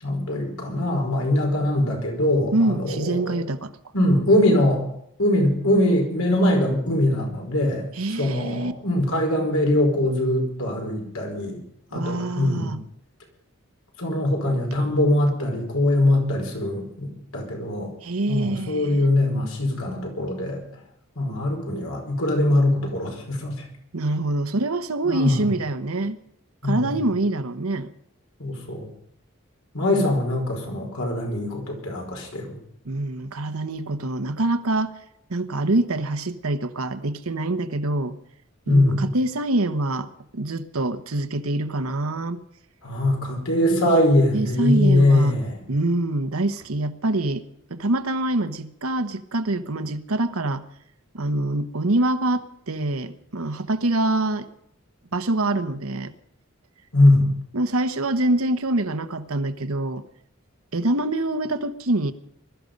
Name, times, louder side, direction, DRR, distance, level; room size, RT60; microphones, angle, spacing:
voice 1, 0.0-3.4 3.9-4.8 5.2-7.9 8.2-11.6 11.9-12.8 14.0-17.9 18.3-20.6 21.2-23.6 25.0-25.4 26.6-26.9 28.4-28.9 29.7-32.6 38.7-39.1 42.8-45.6 56.9-57.3, left 1 dB, 85° left, 1 dB, 4.9 m, -22 dB
voice 2, 2.5-3.7 7.9-8.7 11.9-12.8 18.0-19.1 23.9-26.2 26.6-27.9 32.8-34.9 35.3-38.2 38.7-40.1 40.3-42.4 43.6-44.0 44.3-45.4 45.7-47.4 47.7-50.6 51.1-54.5 55.1-56.1 57.5-60.0 60.7-62.1, right 2 dB, 90° right, 9 dB, 1.1 m, -25 dB
21.0 x 13.0 x 5.3 m, 0.73 s
head